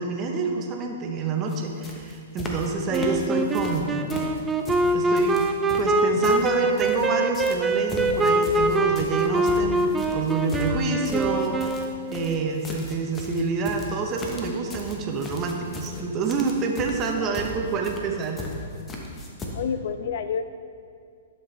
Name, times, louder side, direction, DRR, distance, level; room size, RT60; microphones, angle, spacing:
voice 1, 0.0-4.0 4.9-5.4 5.8-18.4, right 4 dB, 30° right, 2 dB, 1.0 m, -27 dB
sound 1, 1.5-1.6 1.8-2.7 2.9-3.8 4.1-7.1 7.3-19.5, left 2 dB, 20° left, 1.1 m, -37 dB
Wind instrument woodwind instrument, 2.9-12.4, right 2 dB, 10° right, 0.4 m, -24 dB
voice 2, 19.5-20.4, left 7 dB, 55° left, 11 dB, 0.3 m, -29 dB
11.0 x 5.8 x 3.3 m, 2.3 s
figure-of-eight pair, 115°, 0 cm